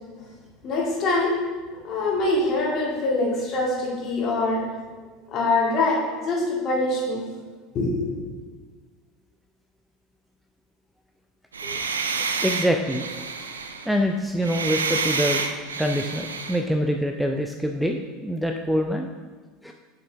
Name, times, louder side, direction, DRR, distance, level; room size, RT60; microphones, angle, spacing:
voice 1, 0.6-1.3 1.8-4.6 5.3-7.3 7.7-8.3, left 2 dB, 40° left, -3 dB, 1.8 m, -24 dB
sound 1, 11.5-16.6, right 5 dB, 80° right, 0.4 m, -29 dB
voice 2, 12.4-13.1 13.4-13.6 13.9-15.4 15.8-19.1 19.6-19.7, equal, ahead, 3 dB, 0.4 m, -25 dB
7.1 x 5.0 x 3.4 m, 1.4 s
figure-of-eight pair, 75°, 0 cm